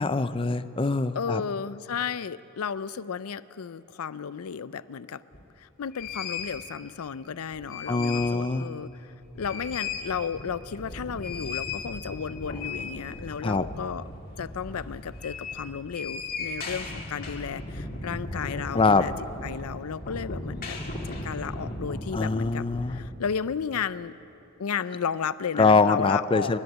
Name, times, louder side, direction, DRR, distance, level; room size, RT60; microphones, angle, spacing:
voice 1, 0.0-1.4 7.9-8.7 13.4-13.7 18.7-19.1 22.1-23.0 25.6-26.6, left 3 dB, 25° left, 13 dB, 0.5 m, -23 dB
voice 2, 1.1-5.2 5.6-14.0 14.4-19.1 19.4-20.8 21.0-24.1 24.6-26.6, left 6 dB, 75° left, 16 dB, 0.5 m, -33 dB
sound 1, 5.3-5.4 5.9-6.6 7.4-8.4 8.8-8.9 9.2-23.1, left 3 dB, 40° left, 2.3 m, -37 dB
29.0 x 11.0 x 8.1 m, 2.7 s
head